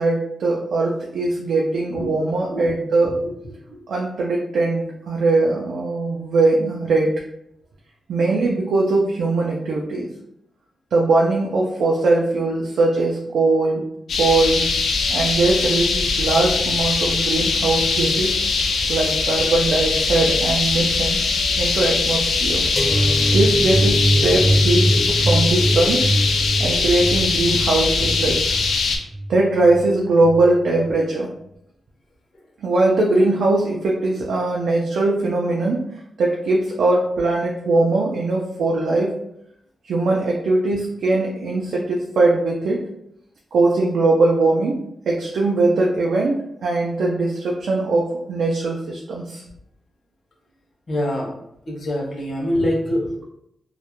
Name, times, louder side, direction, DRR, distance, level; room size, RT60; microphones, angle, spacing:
voice 1, 0.0-3.2 3.9-7.2 8.1-10.1 10.9-13.8 14.2-14.7 15.1-18.4 18.9-21.2 21.5-22.6 23.3-26.1 26.6-28.4 29.3-31.3 32.6-35.8 36.2-39.2 39.9-42.8 43.5-44.8 45.1-49.4 52.6-52.7, right 2 dB, 85° right, -2 dB, 0.3 m, -20 dB
sound 1, 14.1-29.0, left 4 dB, 90° left, 0.3 m, -21 dB
sound 2, 22.8-29.8 30.2-30.5 30.8-30.9, equal, 10° left, 0.4 m, -22 dB
voice 2, 50.9-51.4 51.7-53.1, left 1 dB, 50° left, -2 dB, 0.7 m, -25 dB
2.3 x 2.0 x 2.9 m, 0.76 s
wide cardioid pair, 155°, 0 cm